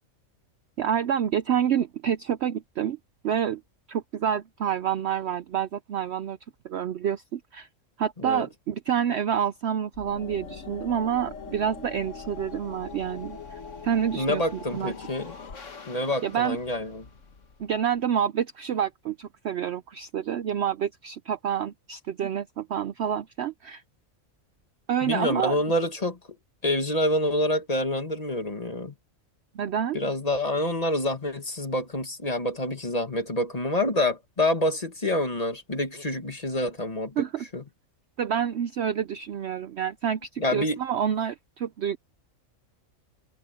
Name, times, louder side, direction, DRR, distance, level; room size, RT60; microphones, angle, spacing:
voice 1, 0.8-3.0 3.2-3.6 3.9-6.4 6.6-7.7 8.0-14.9 16.2-16.6 17.6-23.8 24.9-25.6 29.5-30.0 37.2-37.4 38.2-42.0, right 8 dB, 60° right, 0.8 m, -28 dB
sound 1, 9.9-18.1, left 5 dB, 60° left, 1.9 m, -42 dB
voice 2, 14.2-15.4 15.9-17.1 25.0-26.2 26.6-28.9 29.9-37.3 37.5-37.6 40.4-40.8, left 1 dB, 30° left, 1.7 m, -27 dB
omnidirectional pair, 1.4 m